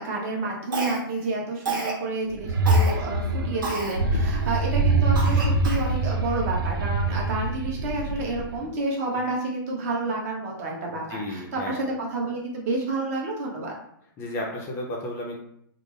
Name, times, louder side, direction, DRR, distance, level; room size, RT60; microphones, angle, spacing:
voice 1, 0.0-13.7, right 2 dB, 45° right, -1 dB, 1.0 m, -30 dB
Cough, 0.7-1.2 1.7-2.0 2.7-2.9 3.6-4.0 4.5-4.6 5.2-5.9, right 3 dB, 70° right, 1.2 m, -30 dB
sound 1, 2.3-8.7, right 2 dB, 85° right, 0.6 m, -24 dB
voice 2, 11.1-11.8 14.2-15.4, left 1 dB, 20° left, -1 dB, 0.5 m, -33 dB
3.5 x 2.0 x 3.7 m, 0.69 s
hypercardioid pair, 150°, 12 cm